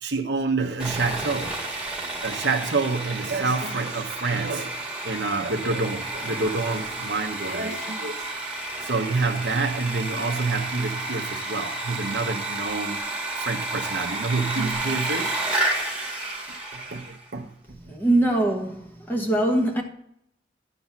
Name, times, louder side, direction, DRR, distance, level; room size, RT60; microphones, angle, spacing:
voice 1, 0.0-1.9 2.2-4.8 5.0-8.2 8.8-13.0 13.4-15.6 16.7-17.5, right 3 dB, 85° right, 1.0 m, -28 dB
Sawing, 0.8-17.2, right 2 dB, 5° right, 1.8 m, -31 dB
voice 2, 17.9-19.8, right 1 dB, 10° left, 1.2 m, -22 dB
11.5 x 4.1 x 5.8 m
head